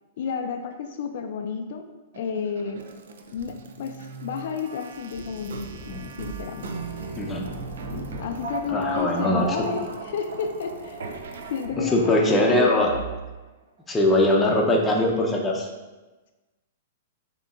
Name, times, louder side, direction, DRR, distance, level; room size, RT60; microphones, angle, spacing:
voice 1, 0.2-1.8 2.2-2.8 3.3-6.7 8.2-11.0 11.5-13.0, left 6 dB, 60° left, 5 dB, 0.3 m, -31 dB
sound 1, 2.1-13.4, right 4 dB, 80° right, 0.4 m, -38 dB
Thunder, 5.0-10.1 10.6-10.7 12.0-12.1, equal, 20° right, 0.8 m, -42 dB
voice 2, 8.7-9.5 11.9-12.9 13.9-15.7, left 1 dB, 10° left, -1 dB, 0.7 m, -21 dB
6.7 x 2.9 x 2.5 m, 1.2 s
hypercardioid pair, 140°, 0 cm